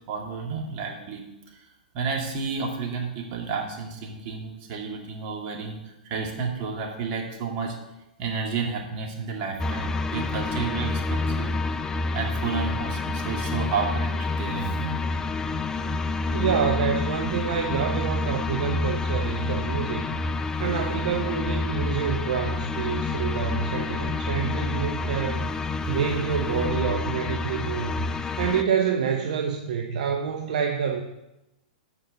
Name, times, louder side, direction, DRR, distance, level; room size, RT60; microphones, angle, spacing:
voice 1, 0.1-1.2 1.5-1.7 1.9-7.8 8.2-11.5 12.1-14.9, right 5 dB, 45° right, 1 dB, 2.3 m, -31 dB
sound 1, 9.6-28.6, left 3 dB, 15° left, 0.5 m, -28 dB
voice 2, 16.3-20.2 20.6-25.5 25.9-28.1 28.4-31.0, right 7 dB, 65° right, 3 dB, 0.9 m, -27 dB
8.1 x 5.2 x 7.0 m, 0.93 s
hypercardioid pair, 115°, 5 cm